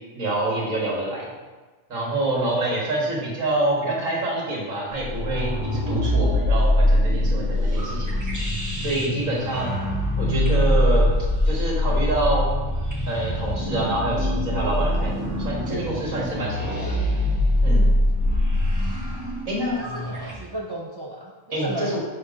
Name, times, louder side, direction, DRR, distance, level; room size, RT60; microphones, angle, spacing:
voice 1, 0.1-1.3 1.9-8.5 8.8-9.8 10.2-11.2 11.5-12.5 13.1-17.0 17.6-17.9 19.5-19.8 21.5-22.0, right 2 dB, 85° right, -4 dB, 2.0 m, -26 dB
sound 1, 4.9-20.3, left 1 dB, 15° right, 1.1 m, -23 dB
voice 2, 19.8-22.0, right 1 dB, 35° right, -2 dB, 0.3 m, -35 dB
6.2 x 3.6 x 5.1 m, 1.3 s
omnidirectional pair, 1.4 m